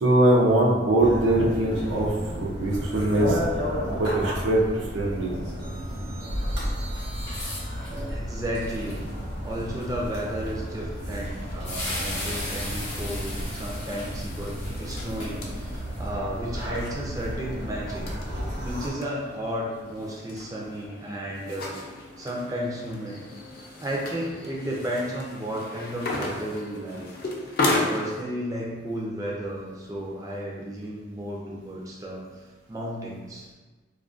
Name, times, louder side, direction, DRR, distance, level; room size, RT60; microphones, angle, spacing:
voice 1, 0.0-3.4 3.9-5.3, right 1 dB, 85° right, -1 dB, 0.5 m, -22 dB
sound 1, 1.0-18.9, equal, 65° right, 0.9 m, -33 dB
sound 2, 1.7-1.9 2.3-2.4 2.7-3.2 6.9-8.1 8.5-9.0 9.4-9.5 11.4-11.5 11.6-16.0, left 1 dB, 70° left, 0.8 m, -37 dB
voice 2, 8.1-9.0 9.4-18.1 18.6-21.7 22.2-23.2 23.6-27.1 27.6-32.4 32.7-33.5, equal, 20° right, -4 dB, 0.3 m, -33 dB
sound 3, 8.7-28.2, left 2 dB, 50° left, 0.4 m, -36 dB
2.3 x 2.2 x 2.4 m, 1.3 s
head